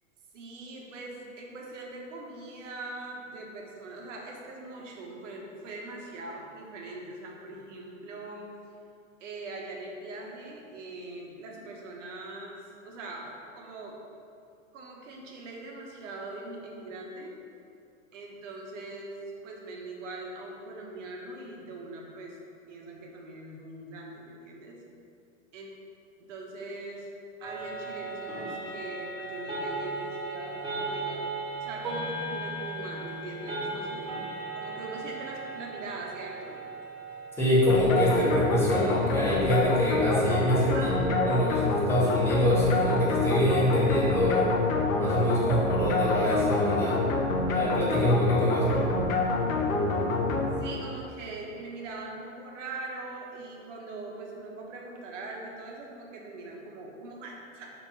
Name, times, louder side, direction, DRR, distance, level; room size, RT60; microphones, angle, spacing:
voice 1, 0.3-8.5 9.2-14.0 14.7-17.3 18.1-22.4 22.6-24.8 25.5-25.7 26.2-27.1 27.4-31.2 31.6-34.2 34.5-36.6 40.7-41.0 48.7-48.9 50.6-57.7, right 2 dB, 65° right, -1 dB, 1.6 m, -41 dB
sound 1, 27.4-44.7, right 2 dB, 10° right, 1.5 m, -38 dB
voice 2, 37.4-44.5 45.0-47.0 47.5-48.9, equal, 5° left, -8 dB, 1.2 m, -25 dB
sound 2, 37.7-51.0, left 3 dB, 90° left, 1.1 m, -27 dB
5.3 x 4.5 x 5.7 m, 2.4 s
hypercardioid pair, 145°, 40 cm